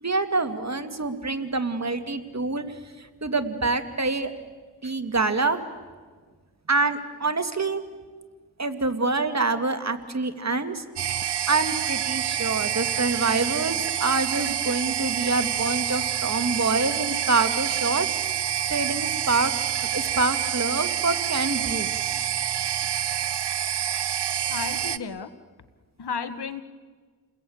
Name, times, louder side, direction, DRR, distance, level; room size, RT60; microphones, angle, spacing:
voice 1, 0.0-2.6 3.2-4.3 4.8-5.6 6.7-7.8 8.6-10.8 11.5-18.1 18.7-19.5 19.9-21.9, right 3 dB, 40° right, 8 dB, 2.4 m, -26 dB
sound 1, 11.0-25.0, right 10 dB, 85° right, 0.9 m, -27 dB
voice 2, 24.5-25.3 26.0-26.6, left 6 dB, 75° left, 12 dB, 1.6 m, -33 dB
29.5 x 21.0 x 8.7 m, 1.5 s
cardioid pair, 50°, 40 cm